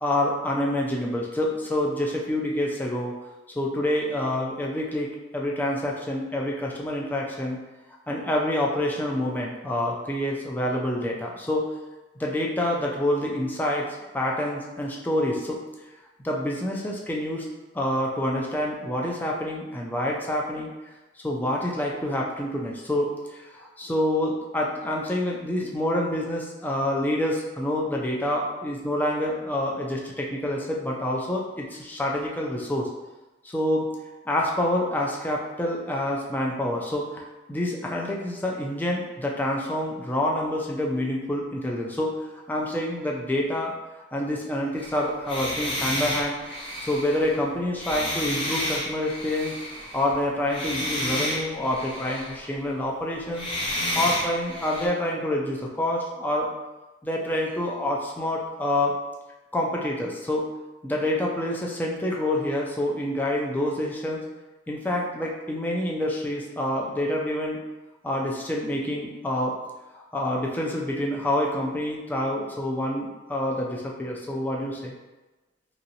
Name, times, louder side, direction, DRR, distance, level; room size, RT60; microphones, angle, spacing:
voice 1, 0.0-3.1 3.6-5.1 5.3-7.6 8.1-11.6 12.2-13.8 14.1-15.6 16.2-17.4 17.7-20.7 21.2-32.9 33.4-33.9 34.3-37.2 37.5-42.2 42.5-43.8 44.1-46.3 46.8-49.6 49.9-53.5 53.9-56.5 57.0-59.0 59.5-60.5 60.8-64.2 64.7-67.6 68.0-69.6 69.9-74.9, left 1 dB, 10° left, -2 dB, 0.3 m, -27 dB
sound 1, 44.8-50.2 50.5-52.5 53.3-54.9, left 1 dB, 30° left, 0.7 m, -31 dB
2.9 x 2.8 x 2.6 m, 1.1 s
head